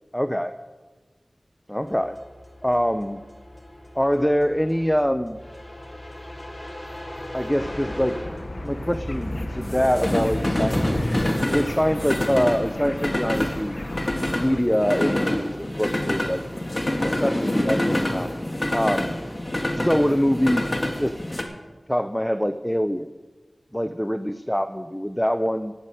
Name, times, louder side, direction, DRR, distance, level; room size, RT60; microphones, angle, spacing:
voice 1, 0.1-0.5 1.7-2.2 2.6-3.2 3.9-5.4 7.3-8.2 8.6-11.2 11.5-13.8 14.3-16.4 17.0-18.3 18.7-19.2 19.7-20.7 21.0-21.1 21.9-23.1 23.7-25.7, equal, 5° left, 10 dB, 0.5 m, -24 dB
sound 1, 1.9-21.4, left 1 dB, 30° left, 1.8 m, -28 dB
sound 2, 7.6-14.6, left 2 dB, 55° left, 0.8 m, -37 dB
11.5 x 8.1 x 9.0 m, 1.3 s
wide cardioid pair, 60°, 0 cm